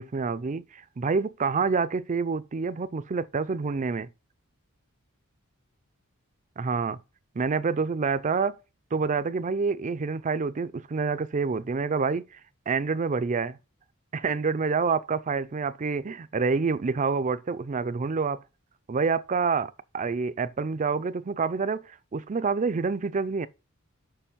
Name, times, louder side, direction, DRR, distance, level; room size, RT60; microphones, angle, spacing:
voice 1, 0.0-4.1 6.6-7.0 7.4-8.6 8.9-12.2 12.7-13.6 14.1-18.4 18.9-23.5, right 4 dB, 35° right, 0.4 m, -27 dB
6.9 x 5.2 x 5.7 m
head